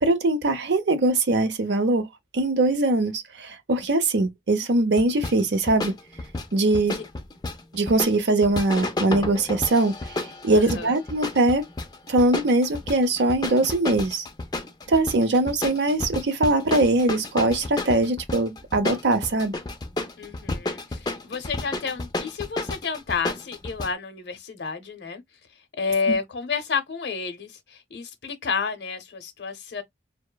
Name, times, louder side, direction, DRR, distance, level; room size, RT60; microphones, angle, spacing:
voice 1, 0.0-2.1 2.3-5.9 6.5-7.0 7.7-11.6 12.1-14.2 14.9-19.5, right 2 dB, 75° right, 0.6 m, -22 dB
sound 1, 5.0-23.9, left 2 dB, 20° left, 0.4 m, -32 dB
voice 2, 10.5-10.9 20.2-25.2 25.8-29.8, left 5 dB, 70° left, 0.7 m, -30 dB
2.9 x 2.0 x 2.2 m
head